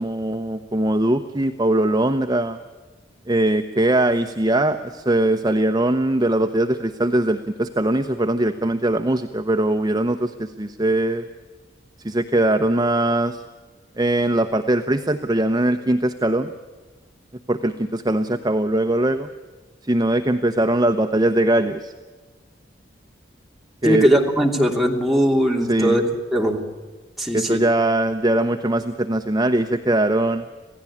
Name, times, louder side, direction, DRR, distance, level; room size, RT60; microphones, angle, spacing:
voice 1, 0.0-2.6 3.3-11.2 12.0-13.4 14.0-16.5 17.5-19.3 19.9-21.9 23.8-24.1 25.7-26.0 27.3-30.4, right 1 dB, 20° right, 6 dB, 0.9 m, -21 dB
voice 2, 23.8-26.0 26.3-26.6 27.2-27.6, equal, ahead, 0 dB, 3.0 m, -19 dB
27.0 x 17.0 x 8.7 m, 1.4 s
head